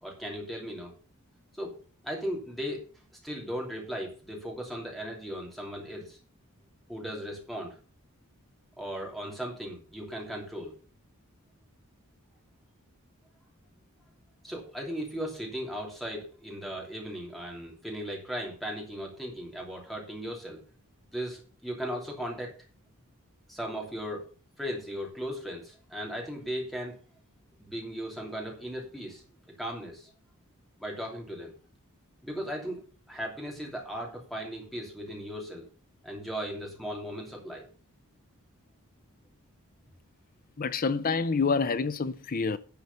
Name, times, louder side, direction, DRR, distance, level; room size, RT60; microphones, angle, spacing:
voice 1, 0.0-0.9 1.6-1.8 2.0-2.8 3.2-6.2 6.9-7.7 8.8-10.7 14.4-20.6 21.1-22.5 23.5-24.2 24.6-27.0 27.6-29.2 29.6-30.1 30.8-31.5 32.2-32.8 33.1-35.7 36.0-37.6, equal, ahead, 2.9 m, -37 dB
voice 2, 40.6-42.6, left 4 dB, 40° left, 0.5 m, -27 dB
11.0 x 5.0 x 6.8 m
head